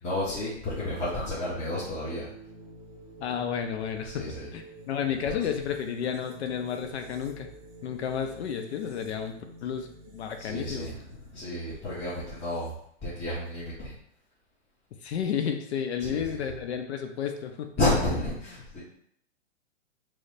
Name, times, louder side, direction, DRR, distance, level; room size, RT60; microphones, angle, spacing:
voice 1, 0.0-2.3 4.0-4.5 5.3-5.4 10.4-12.7 13.0-14.0 16.0-16.6 17.8-18.8, left 1 dB, 15° left, -9 dB, 0.8 m, -31 dB
sound 1, 0.6-12.9, right 2 dB, 15° right, 0.7 m, -49 dB
voice 2, 3.2-4.3 4.5-7.5 7.8-9.4 9.6-10.9 15.0-17.7, left 8 dB, 60° left, 6 dB, 0.5 m, -32 dB
3.1 x 2.1 x 3.9 m, 0.67 s
hypercardioid pair, 125°, 37 cm